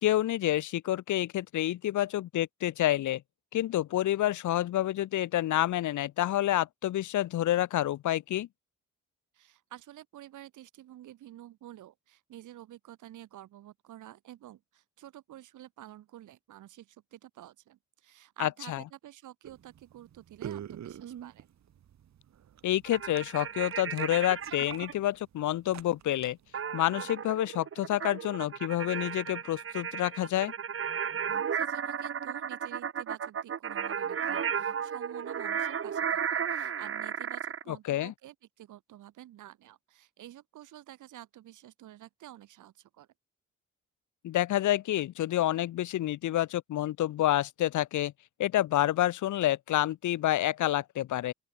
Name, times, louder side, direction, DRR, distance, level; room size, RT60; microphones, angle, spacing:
voice 1, 0.0-3.2 3.5-8.5 18.4-18.8 22.6-26.4 26.7-30.5 37.7-38.1 44.2-48.1 48.4-51.3, left 13 dB, 75° left, 2.0 m, -28 dB
voice 2, 9.3-21.5 31.3-43.1, right 13 dB, 80° right, 7.0 m, -50 dB
sound 1, 19.4-26.6, right 10 dB, 65° right, 5.6 m, -46 dB
sound 2, 22.9-24.9 26.5-37.6, right 7 dB, 45° right, 2.4 m, -34 dB
open air
cardioid pair, 90°, 30 cm